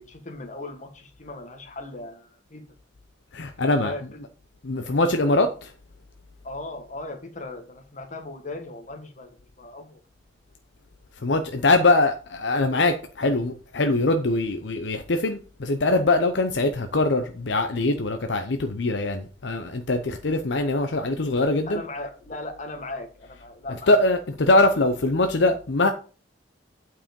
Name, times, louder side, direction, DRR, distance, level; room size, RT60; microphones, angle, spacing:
voice 1, 0.0-2.7 3.8-4.2 6.4-10.0 11.9-12.0 21.6-24.0, left 2 dB, 40° left, 1.6 m, -37 dB
voice 2, 3.3-3.9 4.6-5.7 11.2-12.1 12.4-21.8 23.9-25.9, left 2 dB, 70° left, 0.7 m, -22 dB
8.7 x 4.8 x 5.2 m
head